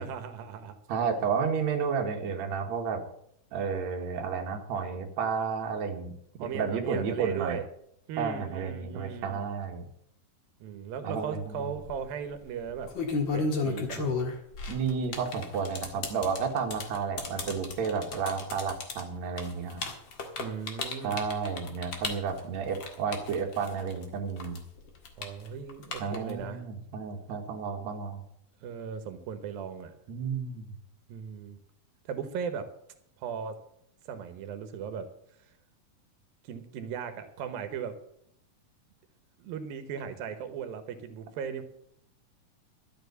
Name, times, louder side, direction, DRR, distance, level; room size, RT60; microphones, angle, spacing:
voice 1, 0.0-0.8 6.4-7.7 8.1-9.4 10.6-13.0 13.3-14.1 20.4-21.2 25.2-26.6 28.6-29.9 31.1-31.6 32.1-32.7 33.2-33.6 34.1-35.1 36.4-38.0 39.4-41.6, right 7 dB, 85° right, 9 dB, 2.9 m, -37 dB
voice 2, 0.9-3.0 3.5-7.6 8.2-9.9 11.0-11.7 14.7-19.8 21.0-24.6 26.0-28.2 30.1-30.7, right 6 dB, 55° right, 2 dB, 2.7 m, -32 dB
sound 1, 11.6-11.9 12.7-24.0 24.4-26.4, left 4 dB, 45° left, 1.9 m, -34 dB
12.5 x 7.7 x 8.0 m, 0.71 s
omnidirectional pair, 4.0 m